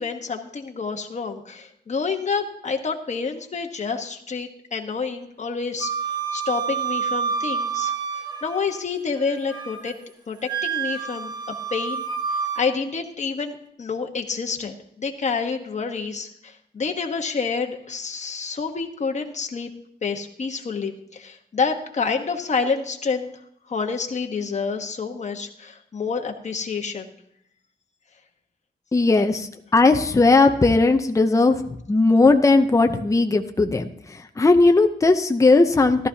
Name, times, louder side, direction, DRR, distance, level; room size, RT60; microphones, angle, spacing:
voice 1, 0.0-5.9 6.3-7.9 8.4-10.0 10.3-12.0 12.5-19.7 20.0-23.3 23.7-27.1, left 5 dB, 40° left, 3 dB, 1.2 m, -28 dB
Wind instrument woodwind instrument, 5.8-8.8 9.2-9.9 10.4-12.6, right 6 dB, 25° right, 1.5 m, -28 dB
voice 2, 28.9-31.6 31.9-33.8 34.4-36.1, left 3 dB, 20° left, 5 dB, 0.6 m, -17 dB
14.0 x 12.5 x 2.8 m, 0.73 s
wide cardioid pair, 145°, 18 cm